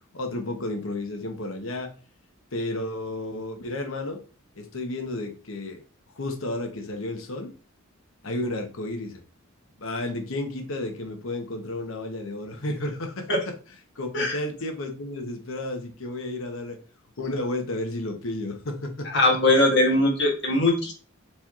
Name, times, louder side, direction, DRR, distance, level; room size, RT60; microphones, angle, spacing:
voice 1, 0.1-1.9 2.5-4.2 4.6-5.8 6.2-7.5 8.2-9.2 9.8-13.3 14.0-16.8 17.2-19.2, left 1 dB, 75° left, 4 dB, 0.9 m, -32 dB
voice 2, 19.1-20.9, left 2 dB, 60° left, -1 dB, 1.5 m, -20 dB
4.4 x 4.2 x 2.4 m, 0.36 s
head